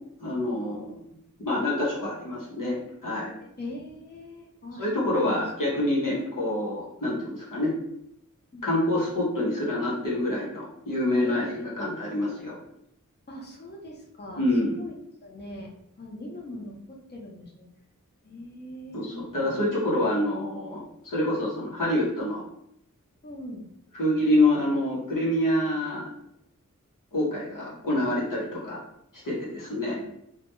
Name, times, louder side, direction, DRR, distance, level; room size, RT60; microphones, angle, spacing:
voice 1, 0.2-0.9 1.4-2.8 3.0-3.3 4.8-7.7 8.6-12.6 14.4-14.8 18.9-22.4 23.9-26.1 27.1-28.8 29.2-30.0, left 1 dB, 90° left, -5 dB, 0.8 m, -26 dB
voice 2, 3.6-5.4 8.5-8.7 11.2-11.6 13.3-14.4 14.8-14.9 15.2-15.7 16.0-17.7 18.2-19.5 23.2-23.6 30.0-30.1, left 1 dB, 35° left, -2 dB, 0.6 m, -41 dB
2.2 x 2.2 x 2.9 m, 0.77 s
wide cardioid pair, 45°, 32 cm